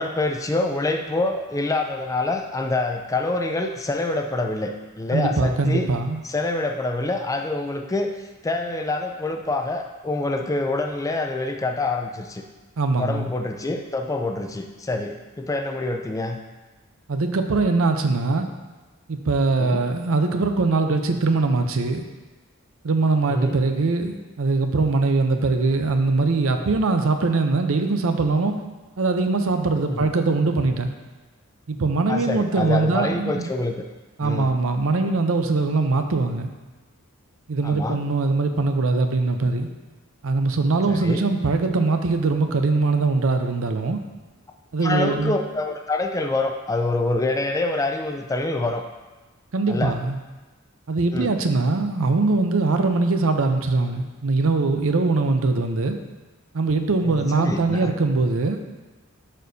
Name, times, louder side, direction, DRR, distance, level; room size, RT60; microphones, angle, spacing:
voice 1, 0.0-5.9 6.2-12.4 13.0-16.4 19.6-19.9 23.3-23.6 29.9-30.1 32.1-33.8 34.2-34.5 37.6-38.0 40.9-41.3 44.8-48.8 49.7-49.9 51.1-51.4 57.0-57.9, left 2 dB, 15° left, 4 dB, 0.4 m, -26 dB
voice 2, 5.1-6.2 12.8-13.3 17.1-18.5 19.1-22.0 22.8-28.6 29.0-30.9 31.7-33.5 34.2-36.5 37.5-39.7 40.2-44.0 44.7-45.4 49.5-50.2 50.9-56.0 56.5-58.6, right 3 dB, 65° right, 6 dB, 0.6 m, -22 dB
11.5 x 4.4 x 2.7 m, 1.2 s
head